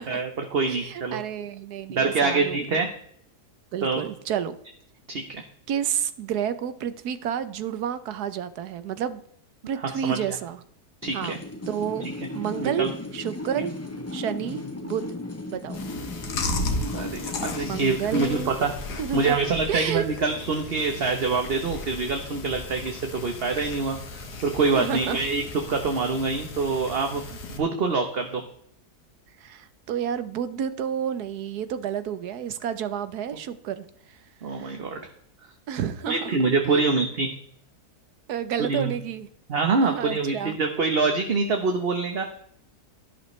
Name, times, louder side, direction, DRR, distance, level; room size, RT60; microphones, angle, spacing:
voice 1, 0.0-1.2 1.9-2.9 3.8-4.0 5.1-5.4 10.0-10.4 11.0-11.4 12.6-12.9 16.9-18.7 19.1-27.2 27.5-28.4 34.4-35.0 36.1-37.3 38.6-38.9 39.5-42.2, right 4 dB, 40° right, 4 dB, 1.1 m, -25 dB
voice 2, 0.7-2.8 3.7-4.5 5.7-9.2 9.7-10.6 11.1-11.4 11.7-12.1 12.3-13.7 14.1-15.2 15.5-15.8 17.7-18.5 19.0-20.0 24.7-25.2 29.4-33.8 34.5-34.8 35.7-36.3 36.7-36.9 38.3-39.3 39.8-40.6, right 9 dB, 75° right, 13 dB, 1.3 m, -30 dB
sound 1, 11.0-18.5, left 2 dB, 20° left, 0.4 m, -36 dB
Chewing mastication, 15.7-27.6, left 2 dB, 80° left, 2.0 m, -35 dB
11.5 x 11.0 x 3.2 m, 0.67 s
omnidirectional pair, 1.7 m